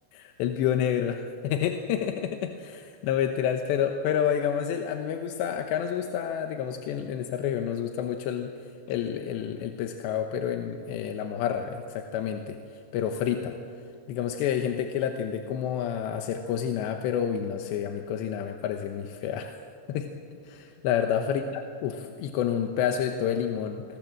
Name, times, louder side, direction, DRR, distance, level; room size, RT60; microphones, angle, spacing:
voice 1, 0.1-8.5 8.9-12.6 12.9-13.6 14.1-19.5 19.9-20.1 20.5-23.8, left 9 dB, 85° left, 5 dB, 3.3 m, -29 dB
27.5 x 22.0 x 7.6 m, 2.4 s
omnidirectional pair, 5.0 m